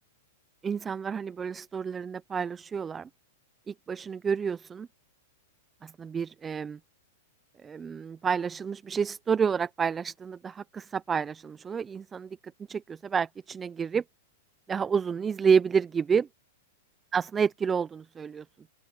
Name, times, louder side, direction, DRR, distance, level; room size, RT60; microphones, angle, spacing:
voice 1, 0.6-3.1 3.7-4.9 5.8-6.8 7.6-12.4 12.7-14.0 14.7-16.3 17.1-18.4, right 6 dB, 20° right, 0.7 m, -29 dB
open air
hypercardioid pair, 125°, 0 cm